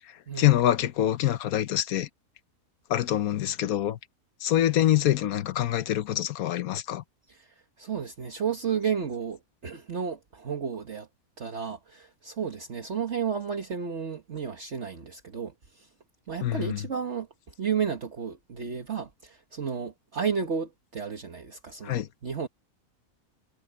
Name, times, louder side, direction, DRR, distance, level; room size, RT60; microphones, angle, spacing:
voice 1, 0.4-2.1 2.9-4.0 4.4-7.0 16.4-16.8 21.8-22.1, left 12 dB, 80° left, 1.2 m, -25 dB
voice 2, 7.8-11.1 11.4-15.9 16.3-17.3 17.6-22.5, right 6 dB, 50° right, 1.7 m, -32 dB
omnidirectional pair, 1.5 m